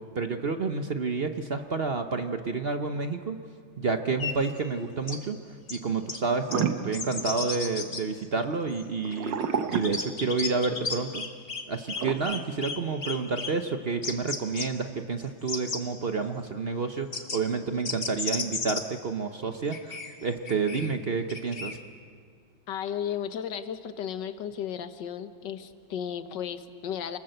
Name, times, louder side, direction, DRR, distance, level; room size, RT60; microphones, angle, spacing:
voice 1, 0.1-3.4 3.8-5.4 5.7-9.4 9.7-11.2 11.7-21.8, right 4 dB, 50° right, 7 dB, 0.7 m, -29 dB
sound 1, 4.2-4.3 5.1-5.2 5.7-5.8 6.1-6.2 6.5-6.6 6.9-8.0 8.7-8.8 9.1-11.6 11.9-12.8 13.0-13.5 14.0-14.7 15.2-15.8 17.1-17.4 17.8-18.8 19.7-20.9 21.3-21.8, left 4 dB, 30° left, 1.7 m, -33 dB
sound 2, 6.5-7.9 9.0-10.7 12.0-12.1, right 7 dB, 65° right, 1.7 m, -30 dB
voice 2, 22.7-27.2, left 9 dB, 65° left, 10 dB, 1.7 m, -34 dB
28.5 x 20.5 x 7.9 m, 2.1 s
omnidirectional pair, 2.2 m